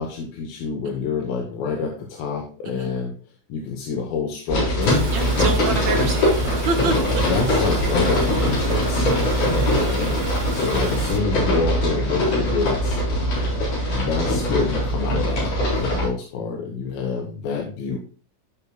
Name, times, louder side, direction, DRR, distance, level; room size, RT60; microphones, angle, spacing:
voice 1, 0.0-3.1 3.5-5.0 6.9-9.1 9.8-10.2 10.5-13.0 13.8-15.5 15.8-18.0, left 5 dB, 85° left, 1 dB, 2.9 m, -27 dB
sound 1, 4.5-16.1, equal, 65° left, 5.5 m, -22 dB
sound 2, 4.8-11.2, right 5 dB, 50° right, 2.0 m, -36 dB
voice 2, 5.1-7.3 9.6-10.0 10.6-10.9 13.4-13.6, right 4 dB, 65° right, 4 dB, 1.9 m, -29 dB
13.5 x 7.1 x 2.3 m, 0.39 s
omnidirectional pair, 4.0 m